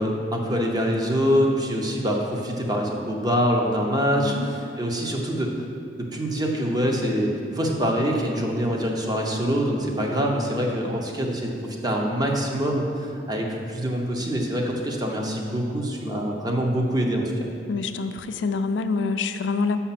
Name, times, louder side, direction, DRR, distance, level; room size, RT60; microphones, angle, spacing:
voice 1, 0.0-5.5 6.0-17.5, equal, 20° right, 0 dB, 0.8 m, -25 dB
voice 2, 4.1-4.5 17.7-19.8, left 4 dB, 75° left, 9 dB, 0.4 m, -26 dB
6.4 x 5.7 x 5.9 m, 2.5 s
head